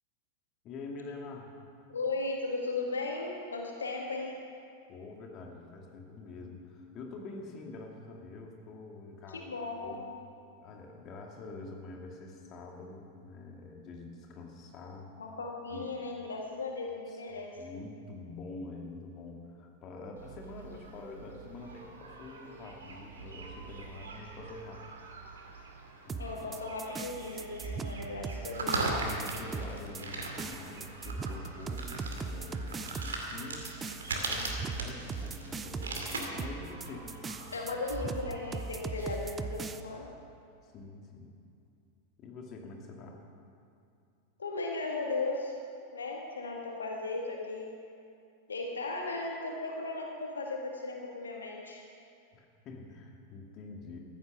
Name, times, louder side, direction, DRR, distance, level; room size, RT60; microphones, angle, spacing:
voice 1, 0.6-1.5 4.9-9.5 9.8-10.1 10.6-15.1 15.7-15.8 17.1-17.2 17.6-24.9 26.1-26.5 27.6-27.9 29.1-33.7 34.1-37.5 40.6-41.3 42.2-43.2 52.3-54.0, left 3 dB, 35° left, 1 dB, 2.3 m, -46 dB
voice 2, 1.9-4.4 9.3-10.1 15.2-17.6 26.2-28.9 37.5-40.1 44.4-45.6 45.9-47.7 48.5-51.9, left 3 dB, 70° left, 1 dB, 1.7 m, -36 dB
sound 1, 20.2-39.2, right 3 dB, 70° right, 2.3 m, -41 dB
sound 2, 26.1-39.8, right 4 dB, 20° right, 0.7 m, -39 dB
15.0 x 13.5 x 6.2 m, 2.5 s
figure-of-eight pair, 90°, 0 cm